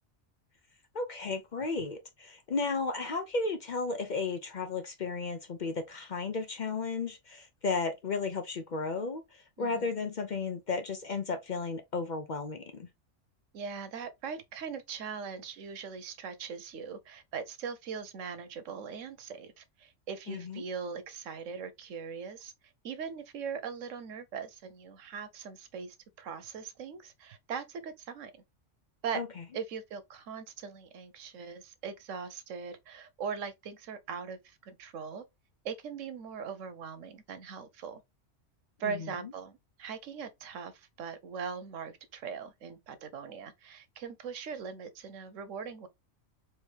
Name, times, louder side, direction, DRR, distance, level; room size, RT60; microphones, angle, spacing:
voice 1, 0.9-12.9 20.3-20.6 29.1-29.3 38.8-39.1, left 4 dB, 50° left, 0.6 m, -34 dB
voice 2, 9.6-10.0 13.5-22.5 22.8-28.4 29.0-29.2 29.5-35.2 35.6-38.0 38.8-45.9, right 6 dB, 90° right, 1.1 m, -40 dB
4.5 x 2.9 x 3.3 m
omnidirectional pair, 1.3 m